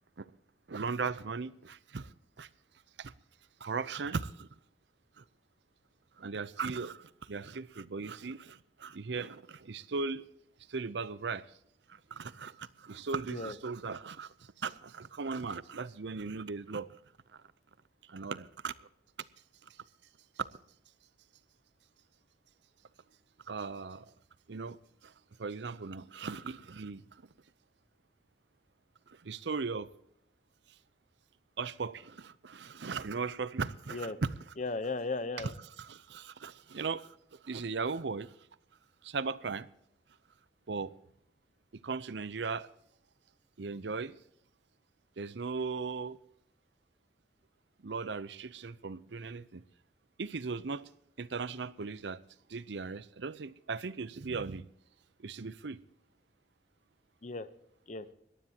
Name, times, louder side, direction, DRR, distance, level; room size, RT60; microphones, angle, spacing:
voice 1, 0.7-2.5 3.0-3.1 3.6-4.5 5.2-5.3 6.2-10.3 10.7-11.5 11.9-16.9 18.1-18.7 20.4-20.5 23.5-24.1 24.5-24.8 25.0-25.1 25.4-27.0 29.1-29.9 31.6-34.3 35.4-35.5 35.8-38.3 39.0-39.7 40.7-40.9 41.8-42.7 43.6-44.1 45.2-46.2 47.8-49.6 50.2-50.9 51.2-52.2 52.5-54.7 55.2-55.8, right 4 dB, 75° right, 0.6 m, -38 dB
voice 2, 34.6-35.5 57.2-57.5 57.9-58.1, left 3 dB, 40° left, 0.9 m, -36 dB
20.0 x 15.0 x 2.9 m
head